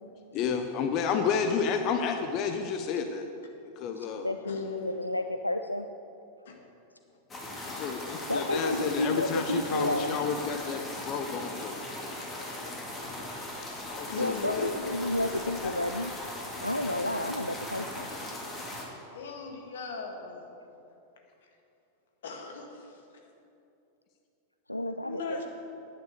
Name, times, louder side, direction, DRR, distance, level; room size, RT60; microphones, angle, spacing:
voice 1, 0.3-3.3 3.8-4.3 7.7-11.8 13.9-14.7 15.6-15.8, left 6 dB, 40° left, 6 dB, 0.7 m, -31 dB
voice 2, 1.1-1.4 4.4-4.9 6.5-6.7 8.7-8.8 12.1-13.7 14.1-14.7 15.2-15.5 19.1-20.5 22.2-23.0 25.0-25.4, left 5 dB, 60° left, 2 dB, 1.8 m, -39 dB
voice 3, 4.0-5.9 8.3-10.2 14.2-16.1 16.6-18.1 24.7-25.4, left 1 dB, 85° left, 8 dB, 0.4 m, -31 dB
sound 1, 7.3-18.8, left 1 dB, 20° left, 2.7 m, -39 dB
10.5 x 9.9 x 6.7 m, 2.8 s
figure-of-eight pair, 90°, 0 cm